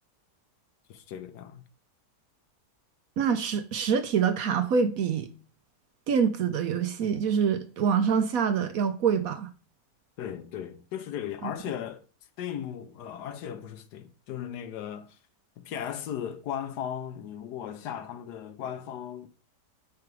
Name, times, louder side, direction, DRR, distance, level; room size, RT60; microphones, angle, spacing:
voice 1, 0.9-1.6 10.2-12.1 12.4-15.2 15.6-19.3, left 9 dB, 75° left, 1.2 m, -37 dB
voice 2, 3.2-5.3 6.1-9.5 11.4-11.5, right 6 dB, 65° right, 1.0 m, -25 dB
6.0 x 4.9 x 4.7 m
omnidirectional pair, 1.8 m